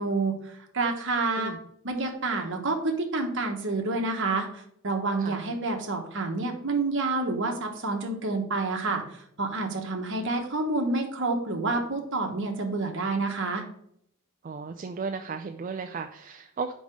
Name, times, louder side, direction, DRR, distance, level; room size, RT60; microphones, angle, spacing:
voice 1, 0.0-1.5 1.8-4.5 4.8-13.6, right 3 dB, 55° right, 3 dB, 1.3 m, -28 dB
voice 2, 14.4-16.7, right 5 dB, 35° right, 6 dB, 0.3 m, -35 dB
5.3 x 5.0 x 6.4 m, 0.71 s
head